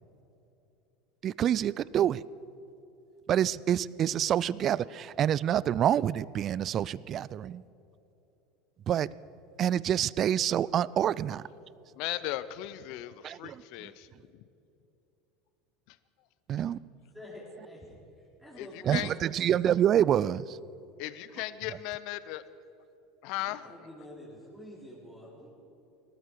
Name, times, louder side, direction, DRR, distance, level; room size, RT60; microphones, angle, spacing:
voice 1, 1.2-2.2 3.3-7.6 8.9-9.1 9.6-11.4 13.2-13.6 16.5-16.8 18.9-20.6, right 10 dB, 45° right, 22 dB, 0.3 m, -27 dB
voice 2, 12.0-14.1 15.9-16.0 18.6-19.1 21.0-21.1 21.4-22.4 23.2-23.6, left 15 dB, 65° left, 15 dB, 0.6 m, -36 dB
voice 3, 17.1-19.0 23.3-25.5, left 1 dB, ahead, -6 dB, 3.6 m, -48 dB
19.0 x 13.0 x 4.7 m, 2.9 s
hypercardioid pair, 85°, 0 cm